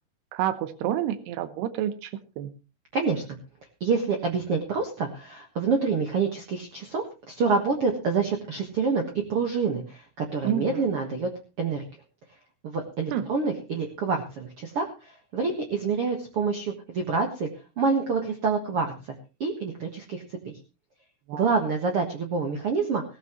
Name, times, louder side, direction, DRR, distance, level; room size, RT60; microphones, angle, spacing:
voice 1, 0.3-2.5 10.4-10.8 13.1-13.3 21.3-21.5, right 11 dB, 85° right, 12 dB, 3.1 m, -29 dB
voice 2, 2.9-3.4 3.8-9.0 9.3-11.3 11.6-11.8 12.6-17.5 17.8-19.1 19.4-20.6 21.3-23.0, right 4 dB, 55° right, 3 dB, 1.7 m, -27 dB
18.0 x 14.0 x 3.1 m, 0.30 s
omnidirectional pair, 4.5 m